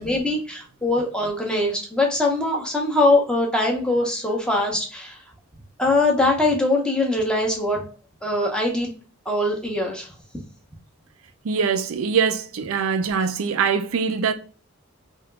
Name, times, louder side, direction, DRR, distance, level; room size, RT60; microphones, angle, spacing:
voice 1, 0.0-5.2 5.8-7.8 8.2-8.9 9.3-10.1, left 2 dB, 5° left, 0.8 m, -22 dB
voice 2, 11.4-14.3, right 6 dB, 85° right, 0.5 m, -23 dB
3.5 x 2.8 x 2.2 m
head